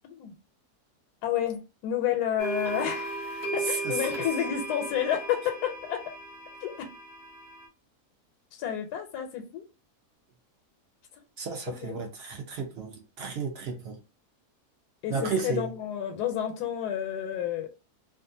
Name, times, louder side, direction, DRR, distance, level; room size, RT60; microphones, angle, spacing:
voice 1, 1.2-6.0 6.6-6.9 8.5-9.6 11.8-11.9 15.0-17.7, left 10 dB, 85° left, 1.1 m, -30 dB
sound 1, 2.4-7.7, right 2 dB, 25° right, 0.6 m, -36 dB
voice 2, 3.6-4.0 11.4-14.0 15.1-15.7, right 5 dB, 65° right, 0.6 m, -33 dB
2.6 x 2.4 x 2.6 m
omnidirectional pair, 1.7 m